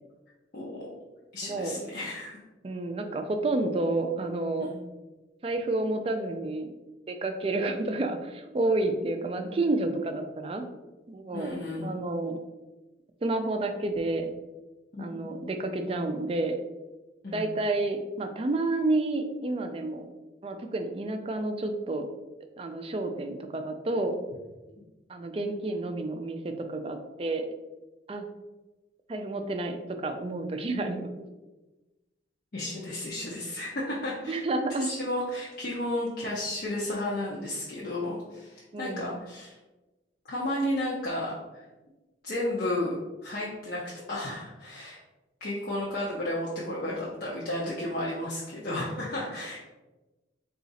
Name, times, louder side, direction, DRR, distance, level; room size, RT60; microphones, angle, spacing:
voice 1, 0.5-0.9 1.3-2.4 4.6-4.8 11.3-11.9 14.9-15.4 17.2-17.5 32.5-34.4 34.8-39.6 40.3-41.6 42.2-43.0 43.2-43.8 44.1-45.0 45.4-49.6, left 1 dB, 50° left, -6 dB, 0.6 m, -33 dB
voice 2, 1.4-1.8 2.6-4.7 5.4-6.7 7.1-10.6 11.1-11.5 11.8-12.4 13.2-14.3 15.0-16.6 17.3-20.1 20.4-22.1 22.6-24.2 25.1-27.5 28.1-28.2 29.1-31.1 34.3-34.9 38.7-39.1, right 2 dB, 30° right, 6 dB, 0.3 m, -30 dB
3.9 x 2.4 x 4.0 m, 1.1 s
head